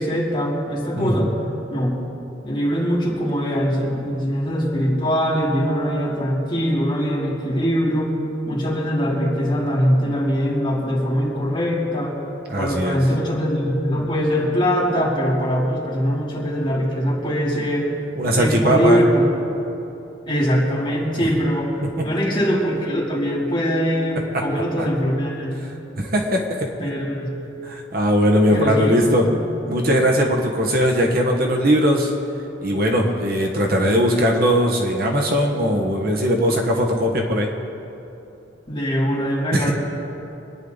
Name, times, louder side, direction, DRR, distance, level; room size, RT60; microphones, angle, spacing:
voice 1, 0.0-1.3 1.7-1.9 2.4-8.2 8.5-12.2 12.6-17.9 18.4-19.3 20.3-21.8 22.0-25.7 26.8-27.3 28.5-29.4 38.7-39.7, equal, 25° left, -6 dB, 3.4 m, -22 dB
voice 2, 1.0-1.3 12.5-13.0 18.2-19.0 24.3-24.4 26.0-26.9 27.6-29.3 29.7-32.1 32.6-37.5 39.5-39.7, equal, 50° right, 0 dB, 1.4 m, -19 dB
25.5 x 9.9 x 4.0 m, 2.9 s
head